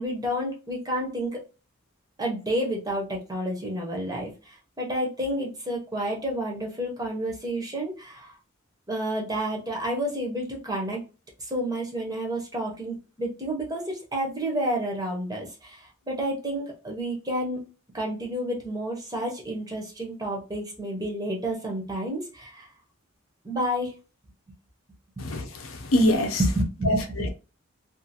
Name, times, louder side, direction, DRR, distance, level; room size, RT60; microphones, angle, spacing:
voice 1, 0.0-1.4 2.2-8.3 8.9-11.0 11.4-17.7 17.9-22.7 23.4-24.0 25.2-25.3 26.4-27.3, right 1 dB, 15° right, 0.6 m, -30 dB
voice 2, 25.2-26.4 26.9-27.3, left 1 dB, 70° left, 0.6 m, -24 dB
2.5 x 2.4 x 2.7 m
head